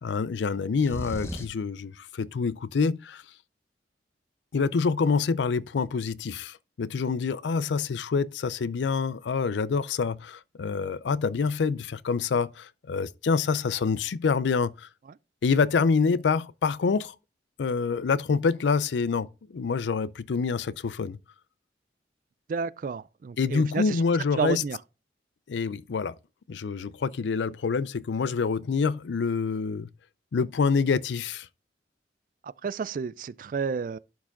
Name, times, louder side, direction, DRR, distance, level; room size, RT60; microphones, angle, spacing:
voice 1, 0.0-3.2 4.5-14.9 15.4-17.1 17.6-21.2 23.4-24.6 25.5-26.1 26.5-29.9 30.3-31.5, left 5 dB, 90° left, 0.4 m, -26 dB
sound 1, 0.8-1.7, equal, 15° left, 1.0 m, -36 dB
voice 2, 22.5-24.0 24.4-24.8 32.4-34.0, right 5 dB, 50° right, 0.3 m, -31 dB
11.5 x 4.7 x 3.7 m
head